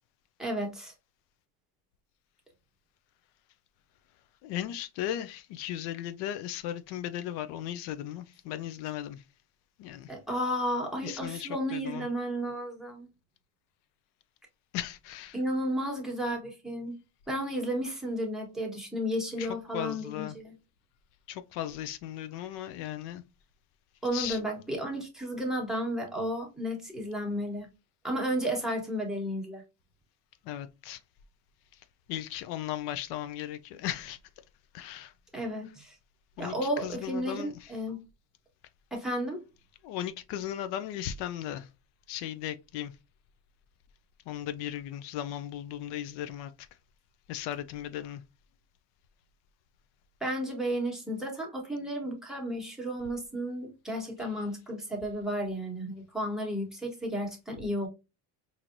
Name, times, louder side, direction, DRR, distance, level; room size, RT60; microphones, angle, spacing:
voice 1, 0.4-0.9 10.1-13.1 15.3-17.0 17.3-20.5 24.0-27.7 28.0-29.6 35.3-35.9 36.4-38.0 38.9-39.4 50.2-57.9, equal, ahead, 1.1 m, -33 dB
voice 2, 4.4-9.2 9.8-10.1 11.0-12.1 14.7-15.4 19.4-19.5 19.7-20.4 21.3-23.2 24.1-24.4 30.5-31.0 32.1-34.2 34.7-35.1 36.4-36.5 36.8-37.7 39.8-41.7 42.1-42.9 44.3-46.5 47.3-48.2, left 11 dB, 85° left, 0.5 m, -36 dB
4.5 x 2.8 x 2.5 m
cardioid pair, 145°, 40 cm